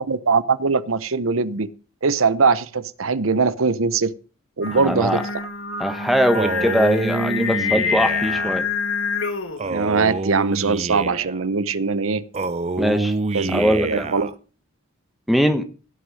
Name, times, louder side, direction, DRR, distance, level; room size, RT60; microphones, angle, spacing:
voice 1, 0.0-1.7 2.0-4.1 4.6-5.2 9.7-12.2 13.3-14.3, right 4 dB, 75° right, 0.8 m, -21 dB
Singing, 4.6-9.7, left 5 dB, 65° left, 1.9 m, -26 dB
voice 2, 4.7-5.2 5.8-8.6 12.8-13.1 13.5-14.1 15.3-15.7, equal, ahead, 1.2 m, -21 dB
Male speech man speaking, 6.3-8.5 9.6-11.4 12.3-14.3, right 3 dB, 30° right, 0.5 m, -26 dB
16.5 x 6.4 x 6.3 m
head